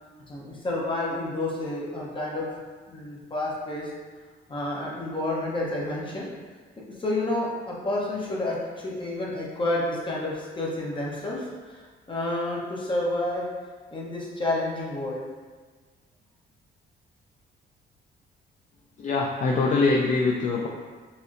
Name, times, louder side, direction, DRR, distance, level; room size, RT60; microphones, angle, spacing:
voice 1, 0.3-2.5 2.9-3.9 4.5-6.3 7.0-13.5 13.9-15.2, left 2 dB, 25° left, -4 dB, 0.8 m, -30 dB
voice 2, 19.0-20.7, left 3 dB, 40° left, -1 dB, 0.4 m, -23 dB
3.9 x 2.0 x 2.5 m, 1.4 s
cardioid pair, 90°, 20 cm